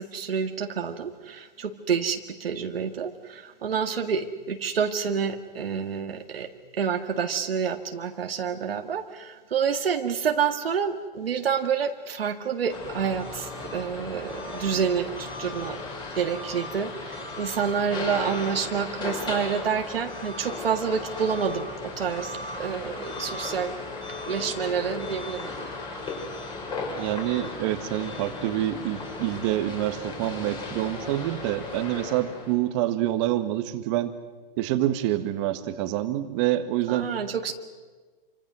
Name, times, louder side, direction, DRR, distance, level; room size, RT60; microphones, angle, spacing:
voice 1, 0.0-6.5 6.8-15.8 16.1-23.8 24.3-25.5 36.9-37.5, right 7 dB, 80° right, 4 dB, 1.9 m, -28 dB
sound 1, 12.7-32.5, left 3 dB, 15° left, 4.6 m, -36 dB
voice 2, 27.0-34.1 34.6-37.1, right 13 dB, 30° right, 10 dB, 1.6 m, -27 dB
28.0 x 25.0 x 6.2 m, 1.4 s
hypercardioid pair, 150°, 29 cm